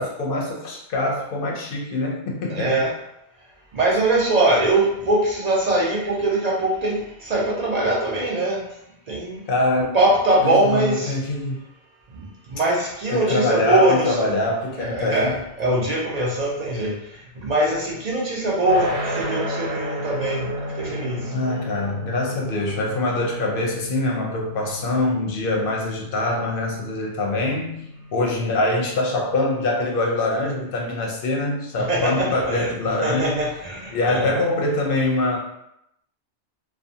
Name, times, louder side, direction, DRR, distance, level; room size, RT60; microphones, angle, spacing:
voice 1, 0.0-2.8 9.5-9.9 10.4-11.6 13.1-15.4 21.3-27.8 28.1-33.4 33.9-35.4, left 2 dB, 60° left, -1 dB, 0.7 m, -24 dB
voice 2, 2.5-2.9 3.7-8.6 9.1-9.4 9.9-11.2 12.1-14.3 14.7-17.0 17.4-20.5 20.8-21.3 31.9-32.7 33.0-34.2, right 2 dB, 55° right, -3 dB, 0.4 m, -22 dB
sound 1, 18.6-29.6, right 1 dB, 75° right, 0.8 m, -33 dB
2.4 x 2.2 x 2.6 m, 0.79 s
omnidirectional pair, 1.2 m